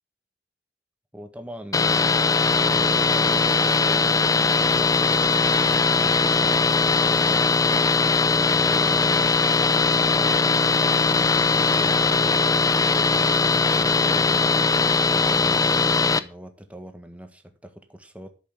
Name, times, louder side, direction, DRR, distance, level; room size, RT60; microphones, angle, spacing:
voice 1, 1.1-2.3 2.7-7.5 8.3-9.4 9.7-10.5 11.1-18.3, equal, 10° right, 1.6 m, -41 dB
sound 1, 1.7-16.2, left 4 dB, 20° left, 0.6 m, -20 dB
11.0 x 7.7 x 5.7 m
head